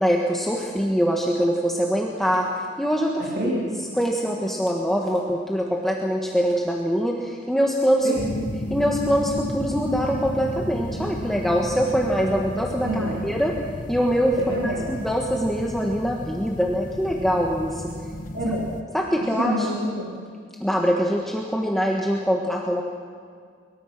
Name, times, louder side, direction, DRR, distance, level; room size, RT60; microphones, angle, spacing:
voice 1, 0.0-3.3 4.0-8.1 8.7-13.6 13.9-14.4 14.6-17.9 18.9-19.7 20.6-22.8, equal, ahead, -1 dB, 1.5 m, -23 dB
voice 2, 3.2-3.7 8.0-8.3 12.8-13.2 14.4-14.9 18.3-18.7 19.4-20.2, equal, 60° right, -4 dB, 3.4 m, -27 dB
sound 1, 8.2-18.8, equal, 45° left, 1.2 m, -33 dB
23.0 x 22.0 x 6.1 m, 2.1 s
head